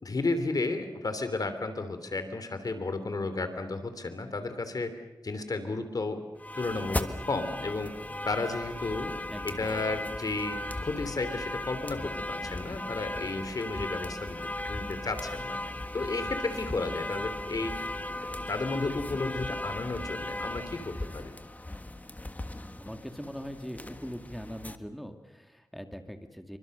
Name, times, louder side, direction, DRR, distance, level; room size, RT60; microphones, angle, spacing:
voice 1, 0.0-4.9 5.2-6.2 6.6-7.9 8.2-9.1 9.4-15.6 15.9-17.7 18.5-21.3, left 3 dB, 60° left, 9 dB, 3.2 m, -33 dB
sound 1, 6.4-24.8, left 1 dB, 20° left, 1.5 m, -37 dB
voice 2, 9.3-9.8 22.8-26.6, equal, ahead, 6 dB, 2.1 m, -41 dB
27.5 x 24.5 x 6.8 m, 1.0 s
wide cardioid pair, 75°, 7 cm